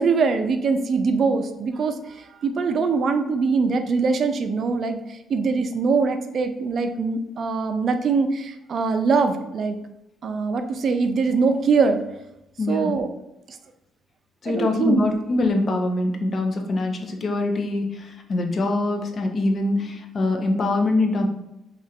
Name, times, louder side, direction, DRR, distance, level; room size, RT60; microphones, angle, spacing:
voice 1, 0.0-9.8 10.2-12.0 12.7-13.1 14.5-15.1, right 4 dB, 55° right, 8 dB, 0.4 m, -23 dB
voice 2, 12.6-13.0 14.4-21.3, left 2 dB, 45° left, 3 dB, 0.6 m, -23 dB
2.9 x 2.5 x 4.2 m, 0.88 s
cardioid pair, 90°, 0 cm